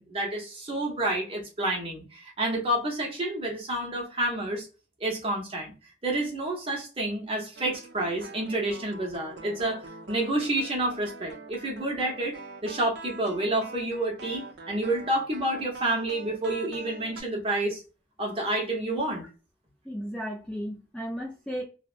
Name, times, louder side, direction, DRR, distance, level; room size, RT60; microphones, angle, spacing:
voice 1, 0.0-4.7 5.0-5.7 6.0-17.8 18.2-19.2, right 1 dB, 30° right, -1 dB, 0.8 m, -29 dB
sound 1, 7.6-17.2, right 3 dB, 60° right, 0.5 m, -44 dB
voice 2, 19.9-21.6, equal, 5° left, -3 dB, 0.4 m, -34 dB
2.7 x 2.1 x 2.4 m, 0.34 s
head